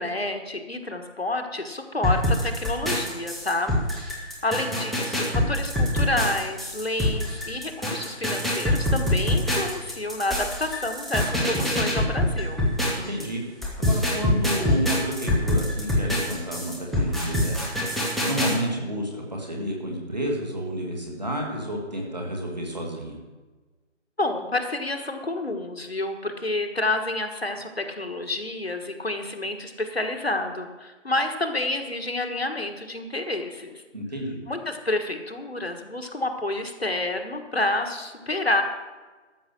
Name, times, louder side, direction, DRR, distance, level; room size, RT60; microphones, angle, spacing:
voice 1, 0.0-12.6 24.2-33.8 34.5-38.6, left 2 dB, 55° left, 5 dB, 1.5 m, -29 dB
sound 1, 2.0-13.2 13.6-18.5, left 1 dB, ahead, 0.7 m, -25 dB
voice 2, 13.0-13.4 13.8-17.6 18.3-23.2 33.9-34.4, equal, 35° right, 0 dB, 2.4 m, -30 dB
13.0 x 6.8 x 6.5 m, 1.3 s
figure-of-eight pair, 175°, 37 cm